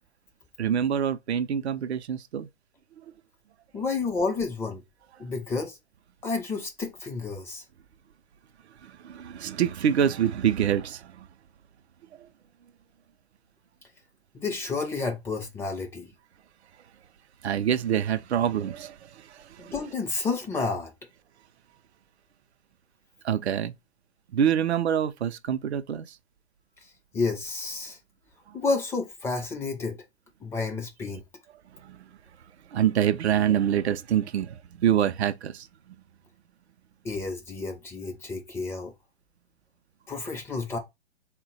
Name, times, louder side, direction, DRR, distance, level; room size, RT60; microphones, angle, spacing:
voice 1, 0.6-2.5 8.8-11.3 17.4-19.7 23.2-23.7 24.3-26.2 28.5-28.6 31.7-32.2 32.7-35.9, right 9 dB, 75° right, 0.5 m, -26 dB
voice 2, 3.7-4.8 5.2-5.8 6.2-7.6 14.3-16.1 19.6-20.9 27.1-28.0 28.5-30.0 30.4-31.2 37.0-38.9 40.1-40.8, left 4 dB, 10° left, 0.4 m, -30 dB
4.0 x 2.2 x 3.9 m
figure-of-eight pair, 115°, 33 cm